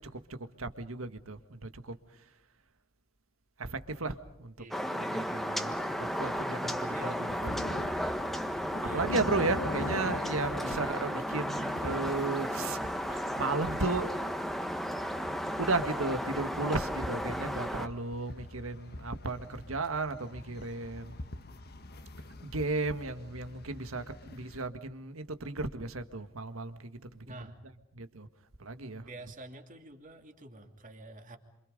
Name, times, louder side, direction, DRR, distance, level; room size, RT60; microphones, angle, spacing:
voice 1, 0.0-2.0 3.6-7.5 8.0-8.1 8.9-12.8 13.1-14.1 15.6-21.2 22.4-27.0 27.9-28.3 28.6-29.1, right 3 dB, 85° right, 9 dB, 1.8 m, -35 dB
sound 1, 4.7-17.9, equal, ahead, 1.4 m, -34 dB
voice 2, 6.9-7.2 8.8-9.4 10.7-10.8 27.3-27.6 28.9-31.4, right 2 dB, 40° right, 5 dB, 2.9 m, -48 dB
sound 2, 7.3-24.7, left 1 dB, 50° left, 1.4 m, -43 dB
28.5 x 27.0 x 5.3 m, 0.84 s
head